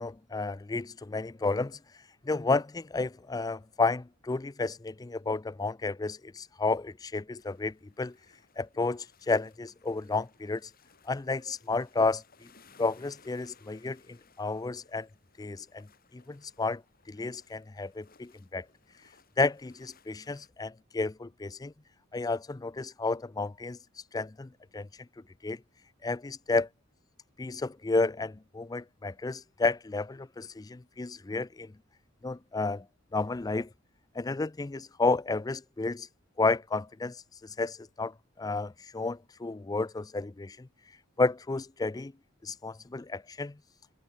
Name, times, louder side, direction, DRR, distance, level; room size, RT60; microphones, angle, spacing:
voice 1, 0.0-1.8 2.3-8.1 8.6-10.7 11.1-12.2 12.8-14.0 14.4-15.1 15.4-15.8 16.1-16.8 17.1-18.6 19.4-21.7 22.1-23.8 24.1-24.9 25.4-25.6 26.0-26.7 27.4-31.7 32.2-32.8 33.1-33.7 34.2-36.1 36.4-40.7 41.2-42.1 42.4-43.5, left 3 dB, 20° left, 0.4 m, -31 dB
sound 1, 7.4-20.5, left 5 dB, 45° left, 6.6 m, -62 dB
head